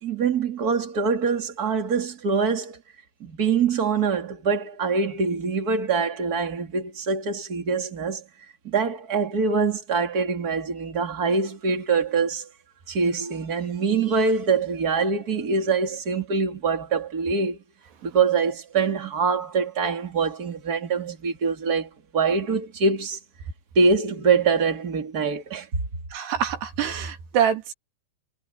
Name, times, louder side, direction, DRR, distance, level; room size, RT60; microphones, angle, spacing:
voice 1, 0.0-2.8 3.2-8.2 8.6-12.5 12.9-17.6 18.0-23.2 23.7-25.8, right 5 dB, 25° right, 2.6 m, -24 dB
voice 2, 26.1-27.7, right 8 dB, 70° right, 4.8 m, -25 dB
omnidirectional pair, 5.0 m